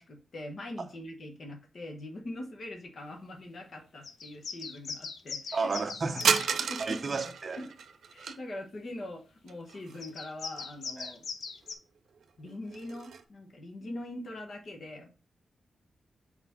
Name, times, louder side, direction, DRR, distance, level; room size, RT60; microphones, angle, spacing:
voice 1, 0.0-5.7 6.5-7.2 7.6-7.7 8.1-11.2 12.4-15.1, left 1 dB, 45° left, 1.1 m, -42 dB
sound 1, 4.0-6.5 10.0-11.7, left 5 dB, 85° left, 0.7 m, -40 dB
voice 2, 5.5-6.4 6.8-7.6 11.0-11.1, right 4 dB, 35° right, 0.7 m, -32 dB
sound 2, 6.2-8.4 9.5-10.2 10.6-10.7 11.6-11.7 12.2-13.2, right 6 dB, 90° right, 0.6 m, -32 dB
4.3 x 4.3 x 5.6 m
wide cardioid pair, 175°, 0 cm